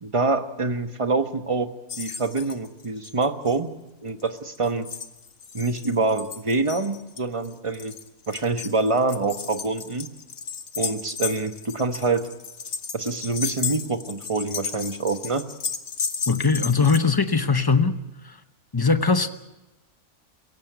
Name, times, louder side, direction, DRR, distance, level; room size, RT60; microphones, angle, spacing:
voice 1, 0.0-3.7 4.0-4.9 5.5-7.9 8.3-10.1 10.8-12.3 12.9-15.4, right 3 dB, 25° right, 8 dB, 1.0 m, -26 dB
sound 1, 1.9-3.6 4.2-17.0, left 6 dB, 45° left, 1.3 m, -34 dB
voice 2, 16.3-18.0 18.7-19.3, left 4 dB, 20° left, 10 dB, 0.8 m, -20 dB
23.5 x 17.0 x 8.0 m, 0.99 s
omnidirectional pair, 1.5 m